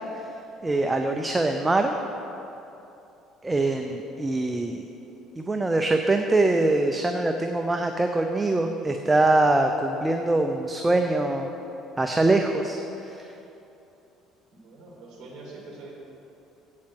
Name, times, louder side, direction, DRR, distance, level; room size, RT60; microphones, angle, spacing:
voice 1, 0.6-1.9 3.4-4.8 5.4-11.5 12.0-12.8 13.1-13.2, right 2 dB, 15° right, 4 dB, 0.5 m, -23 dB
voice 2, 14.5-15.9, right 2 dB, 45° right, -4 dB, 2.6 m, -44 dB
8.7 x 7.4 x 7.7 m, 2.9 s
cardioid pair, 120°, 0 cm